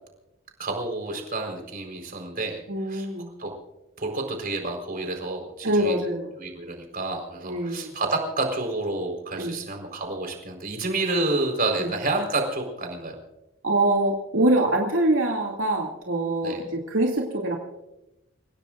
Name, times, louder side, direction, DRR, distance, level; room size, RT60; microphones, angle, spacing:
voice 1, 0.6-3.1 3.4-3.5 4.0-6.0 6.4-13.1 16.4-16.6, right 2 dB, 45° right, 3 dB, 4.3 m, -29 dB
voice 2, 2.7-3.3 5.6-6.3 7.4-7.9 9.4-9.5 11.8-11.9 13.6-17.6, right 1 dB, 80° right, -1 dB, 2.5 m, -24 dB
29.0 x 17.0 x 2.5 m, 0.93 s
head